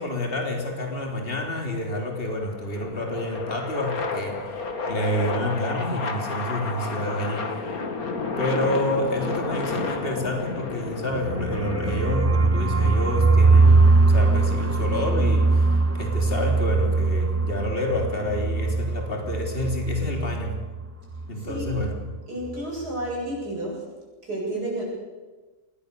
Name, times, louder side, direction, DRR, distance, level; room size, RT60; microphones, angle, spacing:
voice 1, 0.0-7.8 8.4-20.5 21.3-21.9, left 1 dB, 35° left, 1 dB, 3.7 m, -28 dB
sound 1, 1.5-12.0, left 3 dB, 65° left, 2.5 m, -31 dB
sound 2, 11.1-20.9 21.1-21.2 21.5-22.0, right 3 dB, 20° right, 0.4 m, -21 dB
voice 2, 21.4-21.7 22.3-23.9 24.2-24.8, right 1 dB, 85° right, -2 dB, 8.8 m, -31 dB
26.5 x 21.0 x 6.9 m, 1.3 s
omnidirectional pair, 1.7 m